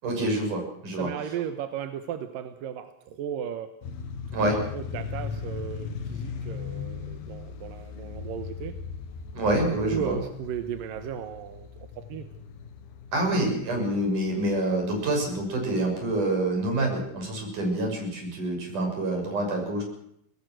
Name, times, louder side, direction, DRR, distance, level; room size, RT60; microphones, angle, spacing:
voice 1, 0.0-1.1 4.3-4.6 9.3-10.2 13.1-19.8, right 1 dB, 45° right, 3 dB, 7.8 m, -27 dB
voice 2, 1.0-3.7 4.4-8.8 9.9-12.3, right 9 dB, 65° right, 9 dB, 2.5 m, -35 dB
sound 1, 3.8-16.9, left 6 dB, 65° left, 3.3 m, -39 dB
24.5 x 19.0 x 6.2 m, 0.72 s
omnidirectional pair, 4.9 m